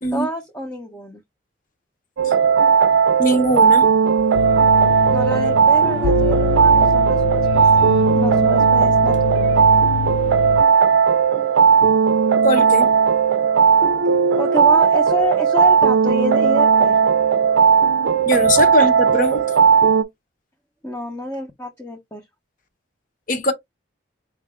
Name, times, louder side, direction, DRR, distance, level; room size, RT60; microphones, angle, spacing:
voice 1, 0.1-1.2 5.1-9.7 14.4-17.1 18.8-18.9 20.8-22.3, equal, 15° left, 0.6 m, -28 dB
sound 1, 2.2-20.0, right 6 dB, 80° right, 0.4 m, -16 dB
voice 2, 3.2-3.9 11.8-11.9 12.4-12.9 18.3-19.4 23.3-23.5, left 1 dB, 45° left, 0.9 m, -20 dB
sound 2, 4.3-10.6, left 6 dB, 70° left, 0.4 m, -25 dB
4.8 x 2.3 x 3.6 m
head